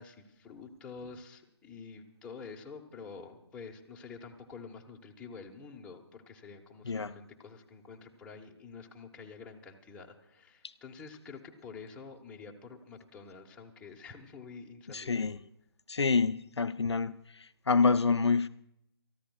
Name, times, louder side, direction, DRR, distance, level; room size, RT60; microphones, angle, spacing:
voice 1, 0.0-15.3, left 5 dB, 5° left, 1.0 m, -48 dB
voice 2, 14.9-15.4 15.9-18.5, left 4 dB, 75° left, 0.5 m, -27 dB
30.0 x 14.5 x 2.3 m
figure-of-eight pair, 145°, 14 cm